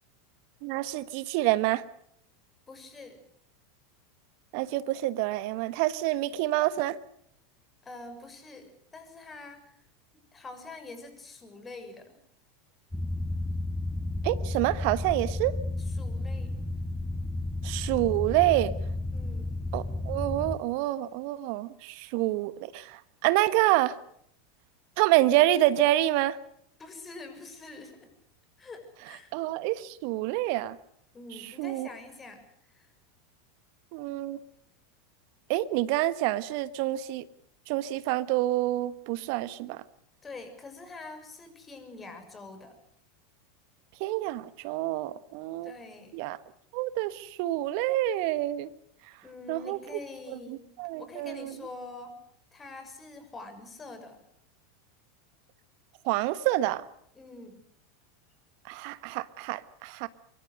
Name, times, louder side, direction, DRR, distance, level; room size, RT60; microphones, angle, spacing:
voice 1, 0.6-1.8 4.5-7.0 14.2-15.5 17.6-18.7 19.7-24.0 25.0-26.4 29.3-30.8 31.6-31.9 33.9-34.4 35.5-37.2 37.7-39.8 44.0-45.7 46.1-46.4 46.7-48.7 49.5-49.8 50.8-51.5 56.0-56.8 58.7-60.1, right 16 dB, 55° right, 15 dB, 1.3 m, -27 dB
voice 2, 2.7-3.2 7.8-9.8 10.3-12.2 15.8-16.5 19.1-19.5 26.8-28.1 28.6-29.3 31.1-32.9 40.2-42.8 45.6-46.2 49.2-50.7 51.0-52.2 52.5-54.2 57.1-57.6, left 3 dB, 20° left, 8 dB, 6.6 m, -45 dB
sound 1, 12.9-20.6, left 2 dB, 5° left, 1.7 m, -32 dB
24.5 x 23.5 x 6.6 m, 0.70 s
figure-of-eight pair, 85°, 0 cm